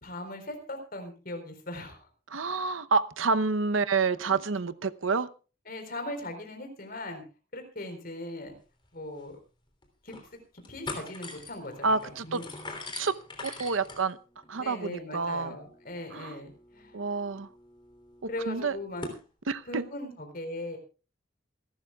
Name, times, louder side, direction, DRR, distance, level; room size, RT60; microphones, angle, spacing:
voice 1, 0.0-2.1 4.3-4.4 5.7-7.2 7.5-8.5 8.9-9.4 10.0-10.4 10.7-12.5 14.6-16.9 18.3-19.1 19.6-20.8, left 1 dB, 45° left, 5 dB, 4.2 m, -39 dB
voice 2, 2.3-5.3 11.8-12.4 12.9-14.2 14.5-15.5 16.1-16.3 16.9-17.5 18.5-18.8 19.5-19.8, right 4 dB, 85° right, 13 dB, 0.8 m, -28 dB
sound 1, 8.8-8.9 9.2-9.3 9.8-10.3 10.6-19.2, left 2 dB, 25° left, 3.2 m, -44 dB
27.0 x 12.5 x 2.4 m, 0.34 s
head